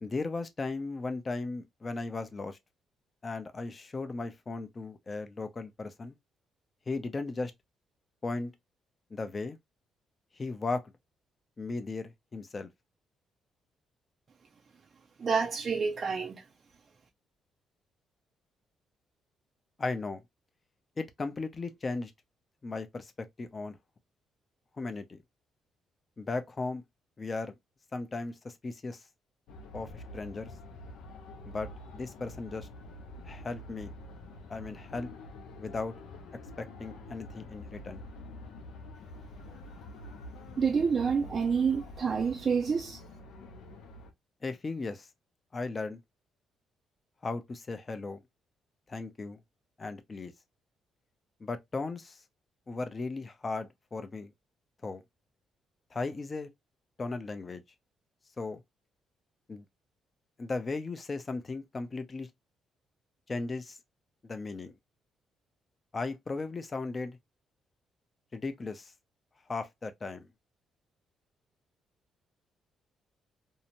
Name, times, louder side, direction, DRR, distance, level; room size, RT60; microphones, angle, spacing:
voice 1, 0.0-2.6 3.2-6.1 6.9-7.5 8.2-8.5 9.1-9.6 10.4-10.9 11.6-12.7 19.8-20.2 21.0-22.1 22.6-23.8 24.8-25.2 26.2-26.8 27.2-27.5 27.9-29.0 29.7-30.5 31.4-32.7 33.3-33.9 34.5-35.1 35.6-35.9 36.6-38.0 44.4-45.1 45.5-46.0 47.2-48.2 48.9-49.4 49.8-50.3 51.4-52.2 52.7-54.3 54.8-55.0 55.9-56.5 57.0-57.6 58.4-58.6 59.5-59.6 60.4-62.3 63.3-63.8 64.2-64.7 65.9-67.2 68.3-68.9 69.5-70.3, left 3 dB, 30° left, 0.5 m, -36 dB
voice 2, 15.2-16.4 40.6-43.0, right 5 dB, 45° right, 0.4 m, -28 dB
sound 1, 29.5-44.1, left 1 dB, 85° left, 0.6 m, -47 dB
2.7 x 2.1 x 2.8 m
cardioid pair, 90°, 0 cm